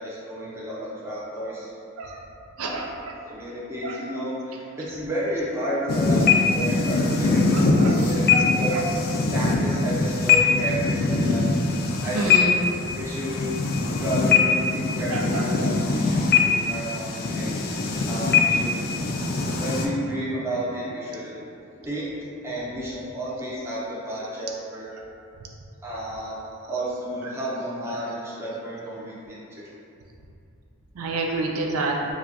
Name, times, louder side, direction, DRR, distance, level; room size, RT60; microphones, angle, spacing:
voice 1, 0.0-1.7 2.6-2.8 3.3-8.8 9.3-11.5 11.8-12.4 12.9-13.5 14.0-17.6 18.1-18.8 19.6-22.1 22.4-24.9 25.8-26.4 26.7-29.7, equal, 10° right, -7 dB, 0.5 m, -32 dB
voice 2, 2.6-3.1 3.8-4.0 6.2-6.4 7.5-8.0 8.3-8.9 12.1-12.6 15.1-15.7 31.0-32.0, right 2 dB, 80° right, 0 dB, 0.4 m, -29 dB
sound 1, 5.9-19.9, left 4 dB, 45° left, 0.3 m, -22 dB
4.7 x 2.2 x 2.7 m, 2.7 s
head